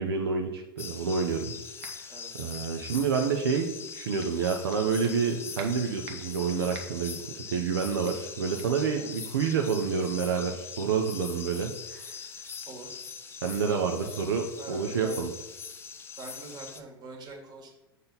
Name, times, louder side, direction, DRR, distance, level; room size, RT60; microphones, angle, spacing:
voice 1, 0.0-1.5 1.8-2.0 2.3-7.2 7.5-12.2 13.4-15.3, right 6 dB, 75° right, 3 dB, 0.6 m, -28 dB
sound 1, 0.8-16.8, left 6 dB, 20° left, 0.6 m, -42 dB
sound 2, 1.8-2.1 2.5-3.7 4.2-5.3 5.6-6.3 6.7-7.1 7.5-7.8 8.0-8.3 8.6-8.8 9.4-9.6, right 6 dB, 55° right, 1.1 m, -48 dB
voice 2, 2.1-2.6 8.8-9.1 12.7-13.0 13.7-13.8 14.6-15.3 16.2-17.7, right 3 dB, 35° right, 1 dB, 1.8 m, -44 dB
7.2 x 3.8 x 4.0 m, 0.97 s
hypercardioid pair, 90°, 13 cm